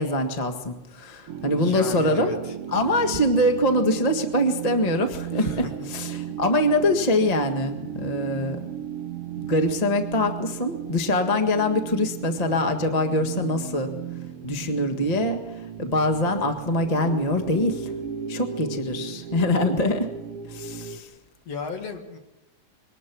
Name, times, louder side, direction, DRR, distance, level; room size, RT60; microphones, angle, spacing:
voice 1, 0.0-2.4 2.7-5.5 5.9-8.6 9.4-13.9 14.4-17.9 18.3-20.1 20.5-21.1, left 1 dB, 30° left, 5 dB, 0.6 m, -24 dB
sound 1, 1.3-21.0, right 8 dB, 65° right, 1.5 m, -35 dB
voice 2, 1.5-2.5 5.3-5.7 21.5-22.2, left 4 dB, 55° left, 5 dB, 2.9 m, -35 dB
23.5 x 19.0 x 6.2 m, 0.98 s
omnidirectional pair, 3.8 m